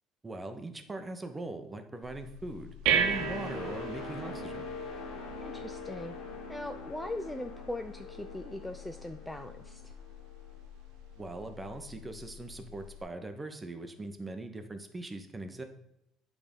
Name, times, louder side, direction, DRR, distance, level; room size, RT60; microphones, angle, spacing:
voice 1, 0.2-4.7 11.2-15.6, right 2 dB, 15° right, 7 dB, 0.9 m, -41 dB
sound 1, 2.0-13.0, right 6 dB, 85° right, 0.7 m, -38 dB
sound 2, 2.8-10.7 11.1-11.4, left 4 dB, 85° left, 1.7 m, -43 dB
voice 2, 5.4-6.2 6.5-9.9, left 1 dB, 5° left, 7 dB, 0.4 m, -40 dB
8.7 x 3.6 x 5.2 m, 0.81 s
supercardioid pair, 95°, 0 cm